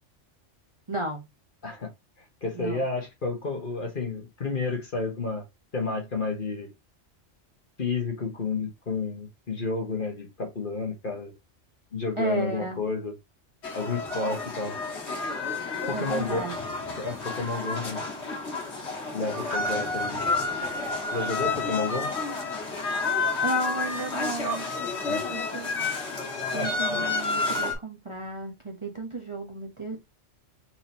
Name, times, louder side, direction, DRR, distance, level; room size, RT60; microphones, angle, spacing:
voice 1, 0.9-1.2 2.5-2.8 12.2-12.8 15.9-16.5 23.4-24.6 25.2-25.7 26.5-30.0, right 2 dB, 25° right, 1.0 m, -33 dB
voice 2, 2.4-5.4 5.7-6.7 7.8-11.3 11.9-13.1 13.7-14.8 15.9-16.4 16.9-18.0 19.1-20.2 21.1-22.1 25.1-25.2 26.5-27.0, left 3 dB, 45° left, 1.5 m, -31 dB
sound 1, 13.6-27.7, left 3 dB, 65° left, 1.7 m, -30 dB
4.4 x 3.8 x 2.8 m
omnidirectional pair, 1.3 m